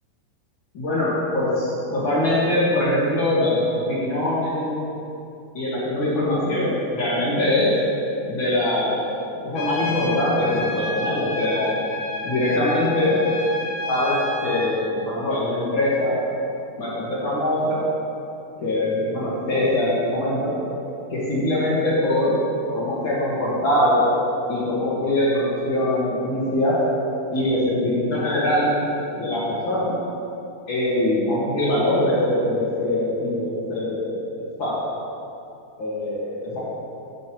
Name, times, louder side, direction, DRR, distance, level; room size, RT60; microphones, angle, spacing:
voice 1, 0.7-4.8 5.5-7.7 8.3-9.1 9.4-11.9 12.2-13.2 13.9-16.2 16.8-17.8 18.6-20.5 21.1-22.4 22.7-24.1 24.5-26.8 27.3-28.7 29.2-29.9 30.7-34.2 34.6-34.8 35.8-36.6, left 1 dB, 50° left, -8 dB, 1.6 m, -22 dB
Trumpet, 9.6-14.8, left 3 dB, 75° left, 2.3 m, -30 dB
10.5 x 8.6 x 3.1 m, 2.7 s
omnidirectional pair, 4.9 m